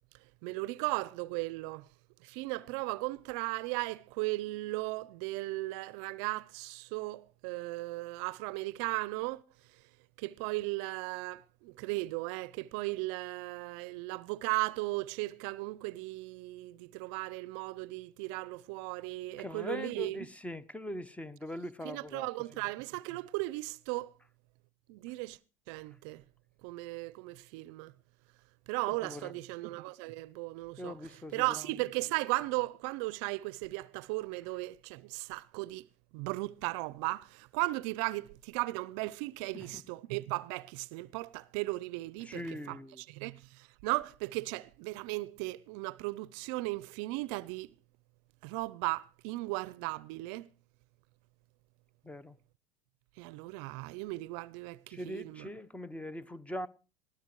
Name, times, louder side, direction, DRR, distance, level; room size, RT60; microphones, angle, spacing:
voice 1, 0.4-1.9 2.2-9.4 10.2-20.2 21.8-24.1 24.9-25.4 25.7-26.2 26.6-27.9 28.7-31.0 31.3-35.9 36.1-42.4 42.7-47.7 48.4-50.5 53.2-55.5, right 22 dB, 65° right, 0.6 m, -36 dB
voice 2, 19.4-22.6 28.9-29.4 30.8-31.7 39.5-39.8 42.2-43.0 52.0-52.4 54.9-56.7, left 1 dB, 10° left, 0.8 m, -42 dB
20.0 x 14.0 x 3.0 m
hypercardioid pair, 85°, 16 cm